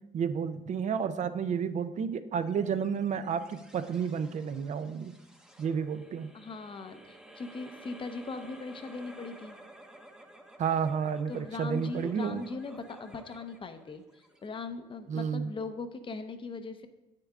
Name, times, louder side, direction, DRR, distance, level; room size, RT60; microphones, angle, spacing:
voice 1, 0.1-5.1 5.6-6.3 10.6-12.4 15.1-15.5, right 7 dB, 45° right, 12 dB, 0.6 m, -31 dB
sound 1, 2.5-15.1, right 1 dB, 5° right, 0.8 m, -54 dB
voice 2, 6.3-9.6 11.3-16.9, left 4 dB, 30° left, 9 dB, 0.7 m, -40 dB
8.4 x 6.7 x 3.6 m, 0.98 s
cardioid pair, 110°, 17 cm